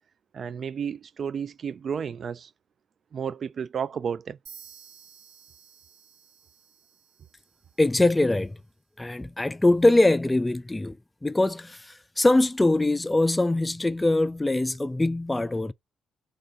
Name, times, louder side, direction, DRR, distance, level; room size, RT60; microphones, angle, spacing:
voice 1, 0.3-2.5 3.1-4.4, right 7 dB, 50° right, 0.4 m, -32 dB
sound 1, 4.5-8.2, right 7 dB, 75° right, 2.0 m, -52 dB
voice 2, 7.8-8.6 9.0-11.0 11.2-15.7, left 2 dB, 15° left, 0.4 m, -22 dB
3.8 x 3.1 x 4.0 m
cardioid pair, 90°, 0 cm